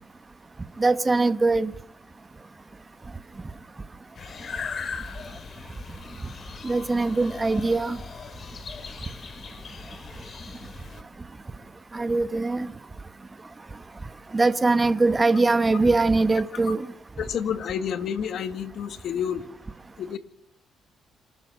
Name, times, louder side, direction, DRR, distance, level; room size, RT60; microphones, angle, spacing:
voice 1, 0.8-1.7 6.6-8.0 11.9-12.7 14.3-16.9, right 3 dB, 25° right, 1.3 m, -22 dB
sound 1, 4.1-11.0, left 5 dB, 50° left, 2.6 m, -39 dB
voice 2, 17.2-19.5 20.0-20.2, left 8 dB, 70° left, 2.0 m, -29 dB
27.0 x 13.0 x 7.7 m
cardioid pair, 90°, 0 cm